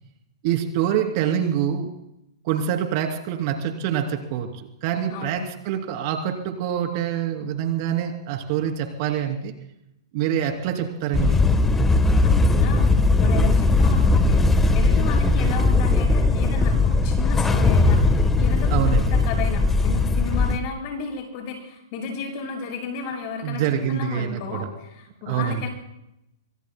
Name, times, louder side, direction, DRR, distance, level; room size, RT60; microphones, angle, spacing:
voice 1, 0.4-1.9 2.4-9.5 10.1-11.4 15.4-15.7 18.7-19.2 23.4-24.7 25.3-25.6, right 9 dB, 45° right, 4 dB, 2.9 m, -25 dB
voice 2, 5.1-5.4 12.4-12.9 13.2-14.5 14.7-23.6 23.9-25.7, left 5 dB, 40° left, 1 dB, 6.8 m, -33 dB
sound 1, 11.1-20.6, left 3 dB, 10° left, 1.2 m, -19 dB
25.5 x 24.0 x 2.2 m, 0.81 s
hypercardioid pair, 140°, 2 cm